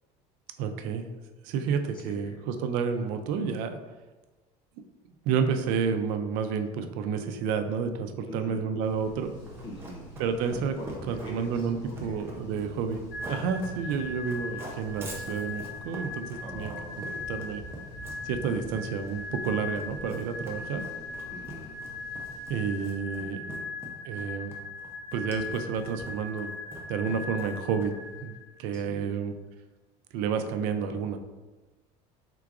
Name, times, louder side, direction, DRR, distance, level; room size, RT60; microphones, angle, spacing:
voice 1, 0.6-1.1 1.4-3.8 5.3-9.3 10.2-10.8 11.1-13.0 13.3-16.7 17.0-17.6 18.2-20.8 22.5-23.4 24.0-24.5 25.1-26.5 26.9-27.9 28.2-28.3 28.6-29.3 30.1-31.2, right 6 dB, 70° right, 7 dB, 0.5 m, -30 dB
voice 2, 1.9-2.4 8.3-8.7 9.6-10.1 10.8-12.2 16.4-17.3 20.4-21.8 23.2-23.8 28.7-29.2, left 1 dB, 30° left, 0 dB, 0.6 m, -44 dB
sound 1, 8.8-23.0, right 1 dB, 85° left, 1.4 m, -48 dB
Run, 9.4-28.1, right 2 dB, 15° right, 0.6 m, -44 dB
sound 2, 13.1-28.7, left 3 dB, 65° left, 0.7 m, -39 dB
4.6 x 3.8 x 2.4 m, 1.2 s
cardioid pair, 165°, 15 cm